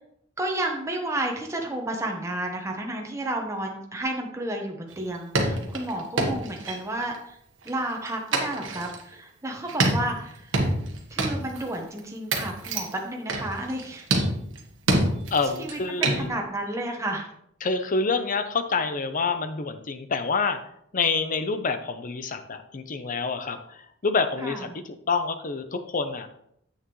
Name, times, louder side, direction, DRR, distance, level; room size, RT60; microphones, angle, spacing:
voice 1, 0.4-7.4 7.6-10.6 11.1-14.1 15.5-17.3 24.4-24.7, right 1 dB, 15° right, 1 dB, 1.0 m, -31 dB
sound 1, 4.9-5.0 5.3-7.2 7.7-9.0 9.7-11.6 12.0-12.1 12.3-12.9 13.3-13.8 14.1-15.7 16.0-16.3, right 2 dB, 75° right, 1.3 m, -26 dB
voice 2, 15.3-16.3 17.6-20.6 20.9-26.3, left 4 dB, 45° left, 9 dB, 0.7 m, -27 dB
8.2 x 6.4 x 3.1 m, 0.72 s
head